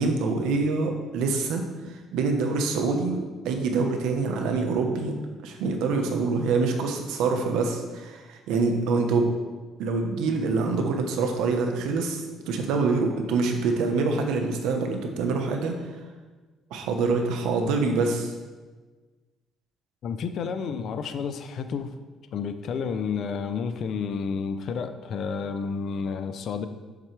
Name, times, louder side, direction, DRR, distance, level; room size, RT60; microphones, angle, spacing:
voice 1, 0.0-1.6 2.1-5.1 5.4-9.3 9.8-12.2 12.5-15.7 16.7-18.3, right 4 dB, 90° right, 4 dB, 1.1 m, -25 dB
voice 2, 20.0-21.9 22.3-26.7, left 6 dB, 50° left, 9 dB, 0.5 m, -30 dB
7.6 x 7.4 x 3.4 m, 1.3 s
cardioid pair, 160°, 0 cm